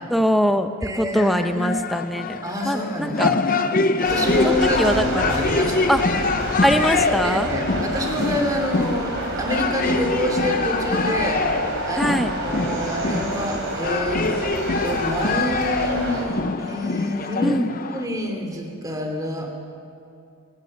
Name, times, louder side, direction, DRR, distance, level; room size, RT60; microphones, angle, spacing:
voice 1, 0.1-3.3 4.4-5.4 5.9-6.0 6.6-7.5 12.0-12.3 17.4-17.7, equal, ahead, 8 dB, 0.8 m, -22 dB
voice 2, 0.8-1.8 2.4-3.6 4.0-6.1 7.2-11.5 11.8-12.1 12.4-14.2 14.8-17.6 17.9-19.5, equal, 15° right, 2 dB, 2.8 m, -27 dB
sound 1, 1.2-18.1, left 3 dB, 40° left, 0.7 m, -25 dB
sound 2, 4.0-16.3, right 1 dB, 55° right, 3.9 m, -29 dB
25.5 x 16.5 x 6.6 m, 2.6 s
head